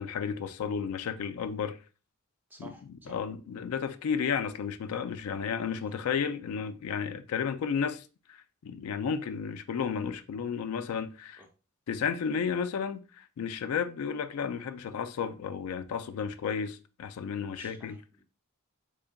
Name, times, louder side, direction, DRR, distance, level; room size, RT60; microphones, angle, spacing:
voice 1, 0.0-1.8 2.6-11.4 11.9-18.0, left 6 dB, 85° left, 0.3 m, -33 dB
voice 2, 2.5-3.2 5.8-5.9 11.4-11.5 17.5-18.2, right 2 dB, 10° right, 0.6 m, -52 dB
3.8 x 3.5 x 2.2 m
head